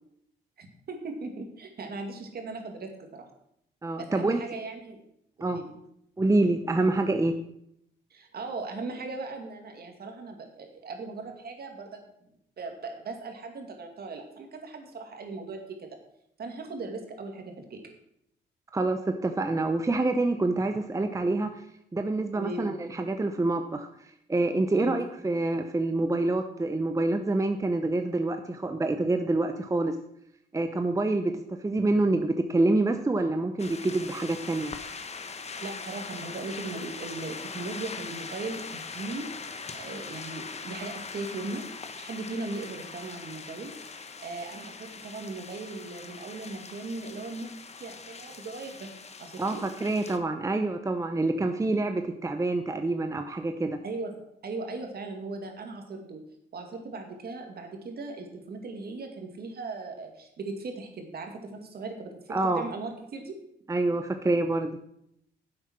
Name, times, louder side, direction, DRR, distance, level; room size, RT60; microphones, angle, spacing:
voice 1, 0.6-3.3 4.0-5.0 5.4-5.7 8.1-12.0 12.6-15.9 16.4-17.8 22.3-22.7 24.7-24.9 35.6-41.6 42.0-43.7 44.2-47.5 47.7-48.9 49.2-49.6 53.8-54.1 54.4-56.2 56.5-63.4, right 3 dB, 50° right, 4 dB, 2.4 m, -38 dB
voice 2, 3.8-4.4 5.4-5.6 6.2-7.3 18.7-21.6 21.9-30.0 30.5-31.3 31.6-34.7 49.4-53.8 62.3-62.6 63.7-64.8, right 2 dB, 15° right, 7 dB, 0.8 m, -27 dB
sound 1, 33.6-50.2, left 5 dB, 35° left, 1.1 m, -41 dB
10.0 x 7.7 x 6.3 m, 0.76 s
cardioid pair, 90°, 20 cm